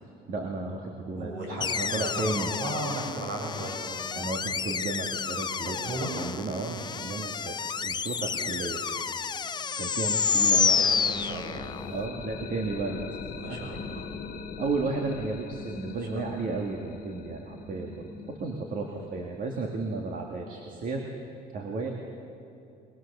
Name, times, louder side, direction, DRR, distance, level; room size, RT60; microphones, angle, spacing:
voice 1, 0.3-2.5 4.2-5.8 6.2-7.5 7.8-8.8 9.8-10.8 11.9-13.1 13.5-13.6 14.6-18.1 18.4-21.0 21.5-21.9, right 3 dB, 55° right, 1 dB, 2.1 m, -33 dB
voice 2, 1.2-3.9 5.6-6.1 10.6-11.7 13.4-14.1 16.1-16.5 19.0-19.1, right 1 dB, 70° right, 0 dB, 7.0 m, -36 dB
sound 1, 1.6-11.9, left 6 dB, 25° left, 0.5 m, -29 dB
sound 2, 10.2-19.9, left 6 dB, 60° left, 1.6 m, -42 dB
21.5 x 21.0 x 6.8 m, 2.6 s
cardioid pair, 110°, 17 cm